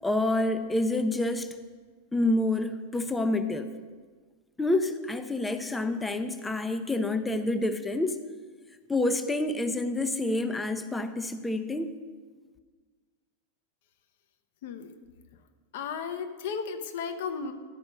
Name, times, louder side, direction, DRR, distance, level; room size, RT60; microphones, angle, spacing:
voice 1, 0.0-1.5 2.1-3.7 4.6-8.2 8.9-11.9, left 2 dB, 10° left, 9 dB, 0.6 m, -28 dB
voice 2, 14.6-14.9 15.7-17.5, left 6 dB, 55° left, 8 dB, 0.8 m, -34 dB
12.0 x 5.2 x 6.2 m, 1.5 s
figure-of-eight pair, 90°, 0 cm